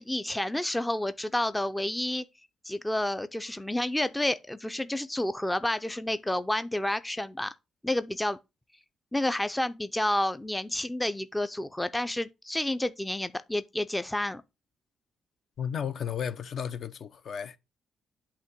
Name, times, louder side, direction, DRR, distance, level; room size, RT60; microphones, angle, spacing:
voice 1, 0.0-2.2 2.6-7.5 7.8-8.4 9.1-14.4, left 1 dB, 10° left, 0.4 m, -30 dB
voice 2, 15.6-17.6, left 8 dB, 60° left, 0.7 m, -34 dB
8.3 x 2.9 x 6.1 m
cardioid pair, 90°, 0 cm